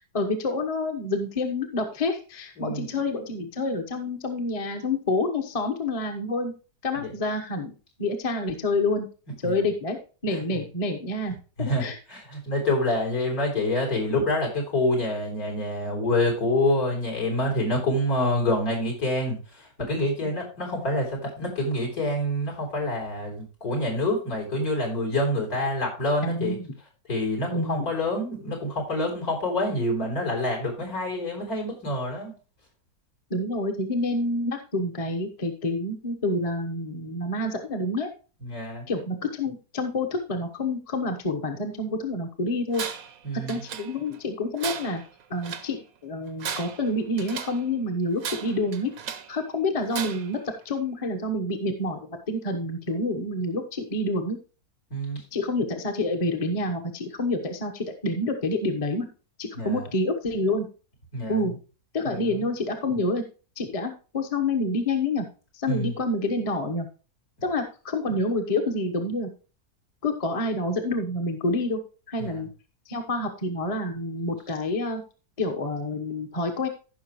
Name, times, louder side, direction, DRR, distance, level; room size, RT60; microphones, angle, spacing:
voice 1, 0.1-6.5 6.8-7.7 8.0-9.1 9.4-10.0 10.2-11.3 11.6-12.0 26.2-26.7 27.5-27.9 33.3-38.1 38.9-42.8 43.5-45.0 45.3-48.9 49.3-50.4 50.6-52.0 52.3-54.4 55.3-59.1 59.4-60.7 61.3-61.5 61.9-63.2 63.6-65.2 65.5-66.9 67.4-69.3 70.0-71.8 72.1-72.5 72.9-75.0 75.4-76.7, left 2 dB, 25° left, 3 dB, 1.1 m, -28 dB
voice 2, 2.6-2.9 7.0-7.1 9.4-9.5 10.3-10.4 11.6-26.6 27.1-32.3 38.4-38.8 43.2-43.6 54.9-55.2 59.6-59.8 61.1-61.5 62.0-62.3 65.7-65.9 72.2-72.4, left 1 dB, 70° left, 0 dB, 4.2 m, -27 dB
Tools, 42.7-43.2 43.5-44.2 44.6-45.7 46.3-47.6 48.2-49.4 49.9-50.4, right 7 dB, 65° right, 1.3 m, -36 dB
15.0 x 5.9 x 3.1 m, 0.35 s
omnidirectional pair, 1.6 m